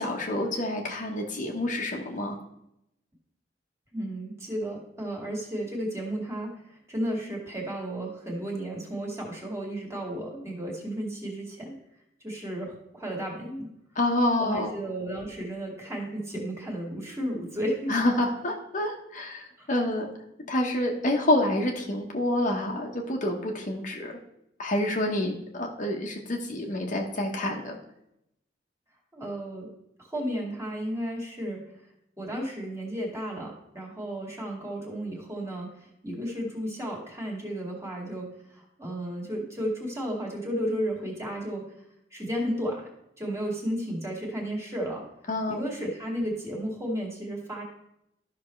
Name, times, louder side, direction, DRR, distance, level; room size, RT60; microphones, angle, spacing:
voice 1, 0.0-2.4 13.9-14.7 17.9-20.1 20.5-24.1 24.6-27.8 45.3-45.6, left 1 dB, 45° left, 1 dB, 1.1 m, -28 dB
voice 2, 3.9-6.5 6.9-11.7 12.2-13.7 14.4-17.9 19.6-19.7 29.1-29.7 30.1-31.6 32.2-35.7 36.0-38.3 38.5-41.7 42.1-42.9 43.2-45.0 45.5-47.6, equal, 15° right, -2 dB, 2.2 m, -33 dB
13.0 x 5.8 x 3.2 m, 0.82 s
head